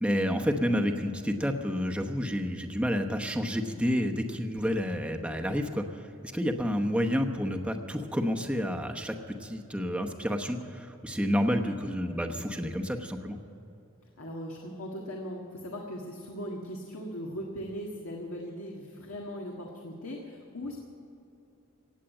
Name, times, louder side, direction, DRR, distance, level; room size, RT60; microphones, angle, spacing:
voice 1, 0.0-13.4, equal, 5° right, 3 dB, 1.0 m, -30 dB
voice 2, 14.2-20.8, equal, 75° left, -1 dB, 1.7 m, -39 dB
17.5 x 8.4 x 8.9 m, 2.8 s
head